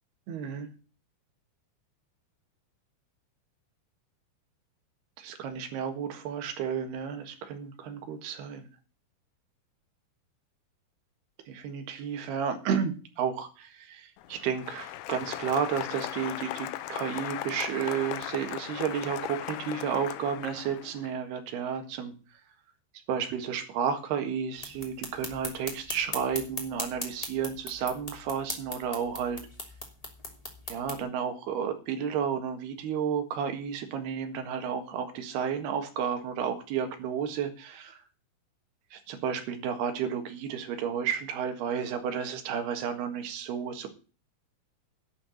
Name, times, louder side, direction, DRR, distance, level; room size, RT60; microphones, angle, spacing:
voice 1, 0.3-0.7 5.2-8.7 11.5-22.1 23.1-29.4 30.7-38.0 38.9-43.9, right 7 dB, 75° right, 7 dB, 3.7 m, -32 dB
Applause, 14.2-21.1, left 14 dB, 85° left, 2.8 m, -37 dB
sound 1, 24.6-31.0, left 1 dB, 15° left, 1.6 m, -39 dB
11.0 x 5.9 x 9.0 m, 0.35 s
omnidirectional pair, 4.6 m